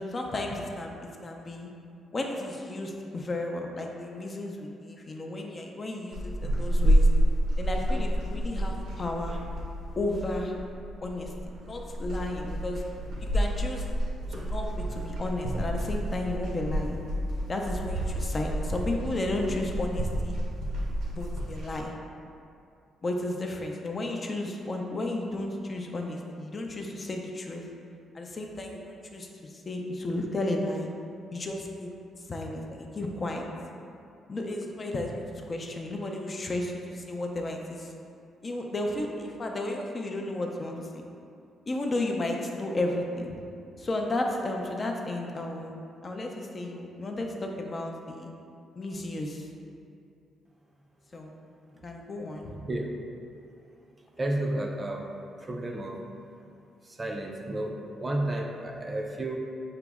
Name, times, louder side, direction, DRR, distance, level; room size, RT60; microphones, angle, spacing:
voice 1, 0.1-1.7 2.1-7.1 7.6-9.4 10.0-10.5 11.0-11.3 11.6-12.8 13.2-13.9 14.3-17.0 17.5-20.4 21.1-21.9 23.0-27.6 28.1-30.9 31.3-31.9 32.3-33.5 34.3-37.9 38.4-41.0 41.7-43.3 43.8-45.8 46.0-48.3 48.8-49.5 51.1-51.3 51.8-52.6, left 2 dB, 35° left, 1 dB, 0.4 m, -33 dB
sound 1, 6.1-21.8, equal, 80° right, 0.7 m, -29 dB
voice 2, 52.5-52.9 54.2-55.1 55.4-56.0 56.8-59.4, right 1 dB, 25° right, 2 dB, 0.4 m, -32 dB
5.6 x 2.0 x 3.5 m, 2.5 s
cardioid pair, 90°, 0 cm